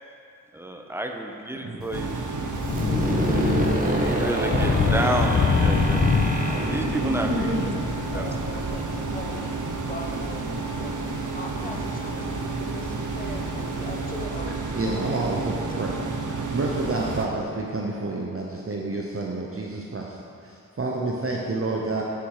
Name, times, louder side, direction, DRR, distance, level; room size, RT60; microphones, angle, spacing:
voice 1, 0.5-2.2 3.3-6.0 6.6-7.5 8.1-8.3 12.2-12.3, right 1 dB, 10° right, 3 dB, 0.8 m, -30 dB
Thunder / Rain, 1.8-14.2, left 5 dB, 45° left, 0.6 m, -28 dB
sound 1, 1.9-17.3, right 4 dB, 70° right, 0.9 m, -31 dB
sound 2, 2.6-8.3, right 1 dB, 25° right, 1.4 m, -28 dB
voice 2, 7.0-7.8 11.8-11.9 14.7-15.9 16.5-22.0, right 2 dB, 45° right, -1 dB, 0.8 m, -29 dB
voice 3, 7.6-10.9 11.3-15.9 16.9-17.4, left 2 dB, 25° left, 0 dB, 1.2 m, -40 dB
7.7 x 6.8 x 4.9 m, 2.4 s
cardioid pair, 45°, 32 cm